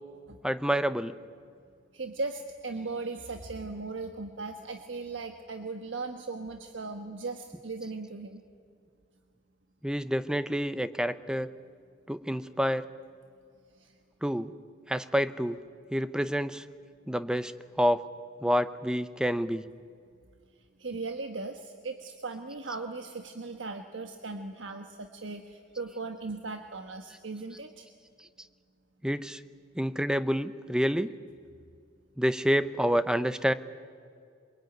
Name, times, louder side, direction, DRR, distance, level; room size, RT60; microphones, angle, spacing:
voice 1, 0.4-1.2 9.8-11.5 12.1-12.9 14.2-14.5 14.9-15.6 15.9-16.6 17.1-17.5 17.8-18.0 18.4-19.6 29.0-29.4 29.8-31.1 32.2-33.5, equal, 5° right, 12 dB, 0.7 m, -28 dB
voice 2, 1.9-8.4 13.8-13.9 20.8-27.9, right 3 dB, 80° right, 5 dB, 1.3 m, -38 dB
23.0 x 22.5 x 9.3 m, 2.3 s
head